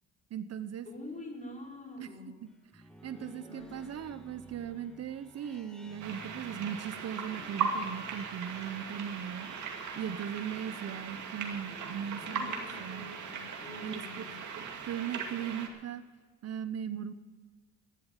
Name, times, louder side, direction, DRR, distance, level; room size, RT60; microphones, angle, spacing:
voice 1, 0.3-0.9 2.0-2.1 2.7-9.5 10.0-13.1 13.8-14.0 14.9-16.0 16.4-17.1, right 9 dB, 55° right, 12 dB, 0.8 m, -38 dB
voice 2, 0.8-2.4 3.1-3.9 12.2-14.4, left 2 dB, 25° left, -1 dB, 4.9 m, -46 dB
sound 1, 2.5-13.3, equal, ahead, 2.1 m, -55 dB
sound 2, 6.0-15.7, right 5 dB, 75° right, 2.4 m, -38 dB
13.0 x 11.5 x 7.3 m, 1.4 s
cardioid pair, 90°, 30 cm